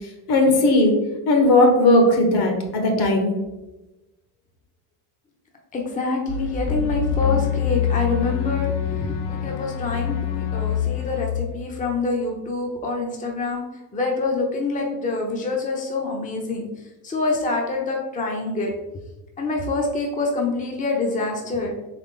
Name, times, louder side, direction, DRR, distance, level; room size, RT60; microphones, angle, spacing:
voice 1, 0.3-0.9 1.3-3.3, left 2 dB, 60° left, 3 dB, 1.3 m, -17 dB
voice 2, 5.7-13.6 13.9-16.7 17.0-18.7 19.4-21.7, left 3 dB, 15° left, 0 dB, 0.7 m, -26 dB
sound 1, 6.3-12.0, left 9 dB, 85° left, 0.7 m, -25 dB
4.0 x 3.3 x 3.7 m, 1.0 s
supercardioid pair, 105°, 44 cm